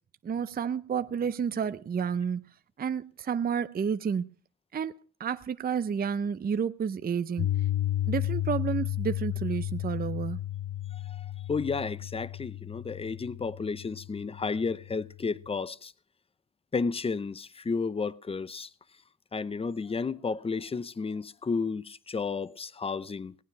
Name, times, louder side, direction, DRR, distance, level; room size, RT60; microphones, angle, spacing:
voice 1, 0.2-2.5 2.8-4.3 4.7-4.9 5.2-7.5 8.1-10.4, right 7 dB, 30° right, 0.6 m, -30 dB
Piano, 7.4-15.5, left 13 dB, 50° left, 0.8 m, -33 dB
voice 2, 11.1-15.9 16.7-18.7 19.3-23.3, left 4 dB, 20° left, 0.7 m, -32 dB
17.5 x 9.4 x 5.9 m
cardioid pair, 90°, 30 cm